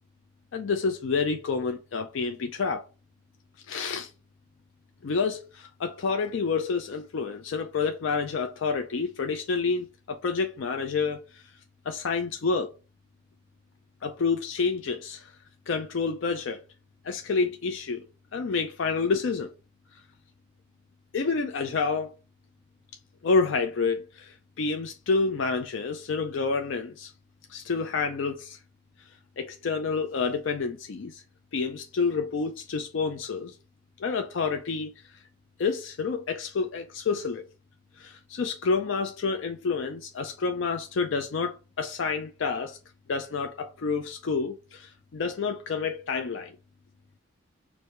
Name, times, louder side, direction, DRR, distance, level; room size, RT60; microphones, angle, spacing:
voice 1, 0.5-2.8 3.7-4.1 5.0-11.4 11.9-12.7 14.0-15.3 15.7-16.6 17.0-18.0 18.3-19.5 21.1-22.1 23.2-27.1 27.5-28.6 29.4-31.2 31.5-33.5 34.0-34.9 35.6-37.4 38.0-42.8 43.1-46.5, left 4 dB, 70° left, 0.4 m, -28 dB
4.6 x 2.6 x 3.2 m
head